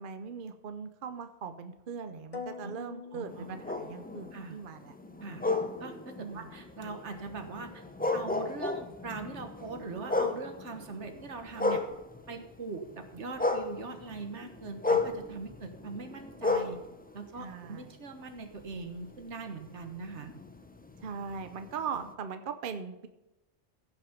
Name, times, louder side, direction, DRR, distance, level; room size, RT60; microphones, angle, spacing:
voice 1, 0.0-4.9 6.2-6.5 17.4-18.0 21.0-23.1, right 6 dB, 50° right, 8 dB, 0.8 m, -40 dB
sound 1, 2.3-4.3, left 5 dB, 35° left, 0.8 m, -44 dB
voice 2, 3.1-3.6 4.3-4.6 5.2-7.8 8.1-11.9 12.3-16.8 17.1-20.3, right 3 dB, 75° right, 6 dB, 1.6 m, -41 dB
sound 2, 3.3-12.5 12.8-18.1 18.6-22.1, left 3 dB, 10° left, 0.5 m, -34 dB
15.5 x 5.9 x 5.2 m, 0.99 s
omnidirectional pair, 1.2 m